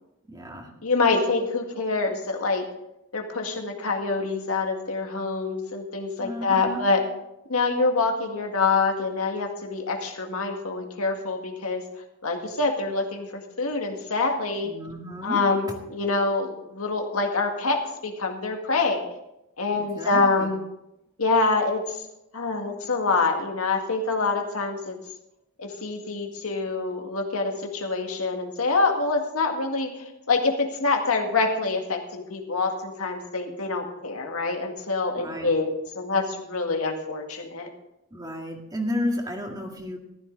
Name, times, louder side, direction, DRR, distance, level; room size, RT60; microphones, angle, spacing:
voice 1, 0.3-0.7 6.2-6.8 14.6-15.4 15.7-15.8 19.7-20.5 35.2-35.5 38.1-40.0, left 1 dB, 20° right, 2 dB, 2.0 m, -32 dB
voice 2, 0.8-2.6 3.1-7.0 7.5-11.8 12.2-14.7 15.2-19.0 19.6-20.6 21.2-22.0 22.3-25.0 25.6-35.7 36.0-37.7, left 3 dB, 85° left, 3 dB, 2.0 m, -26 dB
14.0 x 12.5 x 4.0 m, 0.85 s
head